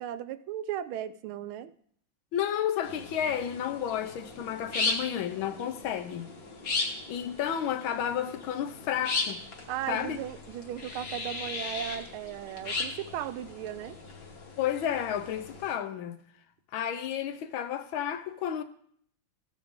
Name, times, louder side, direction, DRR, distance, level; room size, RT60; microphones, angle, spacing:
voice 1, 0.0-1.7 9.7-14.0, right 11 dB, 80° right, 1.4 m, -36 dB
voice 2, 2.3-6.3 7.1-9.4 9.9-10.2 14.6-16.2 16.7-18.6, left 9 dB, 75° left, 1.5 m, -31 dB
sound 1, 2.8-15.7, left 3 dB, 45° left, 1.8 m, -37 dB
15.0 x 8.3 x 3.6 m
omnidirectional pair, 2.3 m